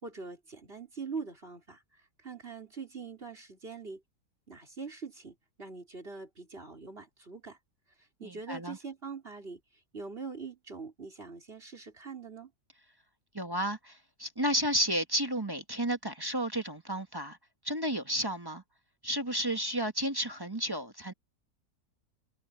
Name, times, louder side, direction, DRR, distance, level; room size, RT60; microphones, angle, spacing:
voice 1, 0.0-4.0 4.5-7.6 8.2-9.6 9.9-12.5, right 4 dB, 35° right, 4.3 m, -43 dB
voice 2, 8.2-8.8 13.3-17.4 17.6-18.6 19.0-21.1, equal, 15° right, 1.2 m, -32 dB
omnidirectional pair, 1.6 m